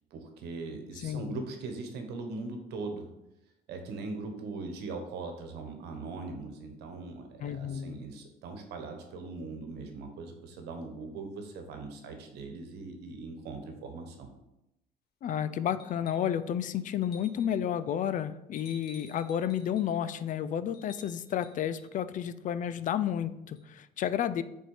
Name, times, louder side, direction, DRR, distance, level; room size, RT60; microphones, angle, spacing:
voice 1, 0.1-3.1 3.7-14.3, right 3 dB, 80° right, 5 dB, 1.3 m, -40 dB
voice 2, 1.0-1.4 7.4-8.0 15.2-24.4, left 9 dB, 50° left, 14 dB, 0.4 m, -31 dB
sound 1, 15.8-16.4 17.0-17.6 18.6-19.9 20.7-21.9 23.6-23.7, left 3 dB, 70° left, 1.5 m, -54 dB
6.2 x 4.5 x 5.0 m, 0.89 s
cardioid pair, 110°, 17 cm